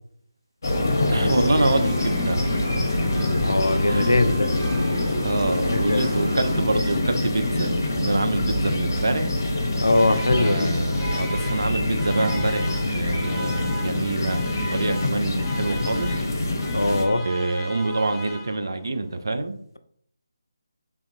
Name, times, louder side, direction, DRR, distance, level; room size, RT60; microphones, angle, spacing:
sound 1, 0.6-17.1, left 2 dB, 55° left, 0.7 m, -25 dB
voice 1, 1.1-2.4 3.2-3.3 3.9-4.2 5.2-9.3 10.3-14.4 14.7-16.2 17.2-19.6, right 2 dB, 65° right, 8 dB, 0.4 m, -26 dB
sound 2, 1.2-6.7, right 1 dB, 45° right, 0.9 m, -37 dB
voice 2, 3.4-4.5 5.7-6.0 9.8-10.7 16.7-17.3, left 2 dB, 80° left, 9 dB, 0.3 m, -21 dB
Alarm, 9.5-18.9, equal, 10° left, 0.4 m, -38 dB
3.4 x 2.6 x 2.6 m, 0.67 s
figure-of-eight pair, 150°, 2 cm